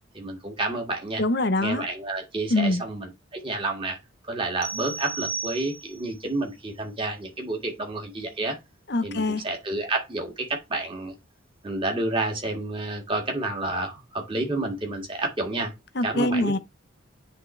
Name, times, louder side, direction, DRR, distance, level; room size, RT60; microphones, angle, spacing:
voice 1, 0.1-1.2 1.6-4.0 4.3-8.5 9.0-11.1 11.6-15.7 16.0-16.6, right 2 dB, 25° right, 1.8 m, -30 dB
voice 2, 1.2-1.9 2.5-2.8 8.9-9.5 16.0-16.6, left 2 dB, 50° left, 0.7 m, -24 dB
sound 1, 4.6-6.1, right 5 dB, 80° right, 1.5 m, -34 dB
9.6 x 3.6 x 3.1 m
head